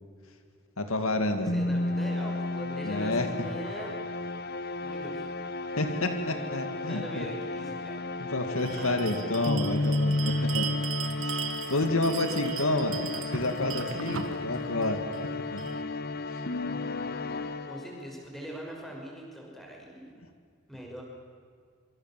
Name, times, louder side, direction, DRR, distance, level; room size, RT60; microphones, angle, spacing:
voice 1, 0.8-1.5 2.8-3.3 5.8-7.3 8.2-10.7 11.2-13.0 13.3-15.0 15.5-15.6 16.3-16.4, left 2 dB, 70° left, 7 dB, 2.1 m, -29 dB
voice 2, 1.4-3.9 4.8-5.6 6.3-8.3 8.7-9.0 17.7-20.2 20.7-21.0, right 1 dB, ahead, -1 dB, 5.9 m, -43 dB
sound 1, 1.5-18.2, left 2 dB, 45° left, 1.0 m, -33 dB
Bell, 8.6-15.8, right 7 dB, 65° right, 1.7 m, -38 dB
27.0 x 25.0 x 7.5 m, 2.1 s
head